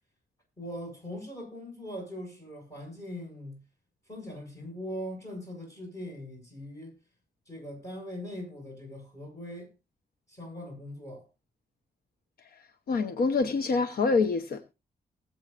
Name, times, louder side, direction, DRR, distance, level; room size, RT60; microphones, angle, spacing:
voice 1, 0.6-3.6 4.1-7.0 7.5-9.7 10.3-11.3, equal, 20° left, 6.7 m, -41 dB
voice 2, 12.9-14.7, left 4 dB, 70° left, 1.0 m, -26 dB
20.0 x 8.0 x 2.5 m
wide cardioid pair, 145°, 16 cm